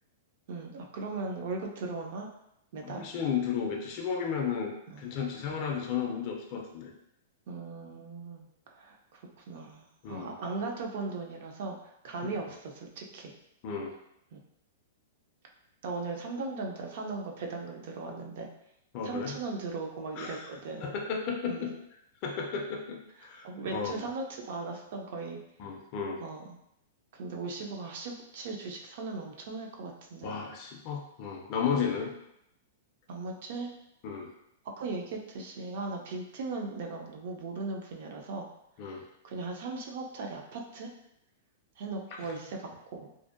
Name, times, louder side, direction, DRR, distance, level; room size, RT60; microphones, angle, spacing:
voice 1, 0.5-2.3 2.7-3.1 4.9-5.1 5.5-5.7 7.5-9.2 9.5-11.8 12.0-13.3 14.3-14.4 15.8-18.5 19.0-20.9 21.5-21.7 23.4-25.4 26.2-26.5 27.1-30.3 31.7-31.9 33.1-33.7 34.8-38.5 39.2-40.9 41.8-43.1, right 3 dB, 45° right, 1 dB, 0.4 m, -38 dB
voice 2, 2.8-6.9 10.0-10.3 12.2-12.3 13.6-13.9 18.9-19.4 20.2-20.5 20.8-21.7 22.2-24.1 25.6-26.2 30.2-32.1 34.0-34.3 38.8-39.0, left 6 dB, 30° left, 1 dB, 0.3 m, -33 dB
2.5 x 2.1 x 2.4 m, 0.79 s
supercardioid pair, 170°, 0 cm